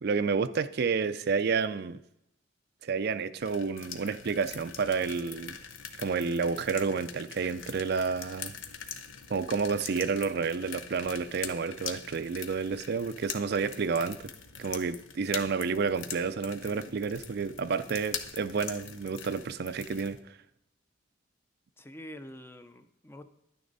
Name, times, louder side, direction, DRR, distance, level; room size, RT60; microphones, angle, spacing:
voice 1, 0.0-2.0 2.8-5.6 6.0-8.5 9.3-14.2 14.6-20.2, right 5 dB, 55° right, 12 dB, 0.4 m, -30 dB
sound 1, 3.4-20.2, left 7 dB, 80° left, 0.9 m, -43 dB
voice 2, 21.8-23.3, left 1 dB, 10° left, 10 dB, 0.5 m, -46 dB
11.0 x 9.5 x 4.0 m, 0.79 s
head